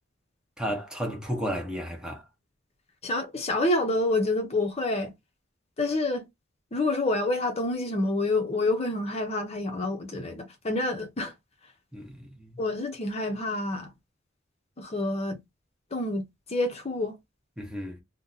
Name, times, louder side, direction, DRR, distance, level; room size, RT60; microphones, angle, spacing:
voice 1, 0.6-2.2 11.9-12.6 17.6-18.0, equal, 5° right, 0.7 m, -33 dB
voice 2, 3.0-5.1 5.8-6.3 6.7-11.3 12.6-13.9 14.8-15.4 15.9-17.2, left 2 dB, 30° left, 0.6 m, -28 dB
2.6 x 2.1 x 3.8 m
head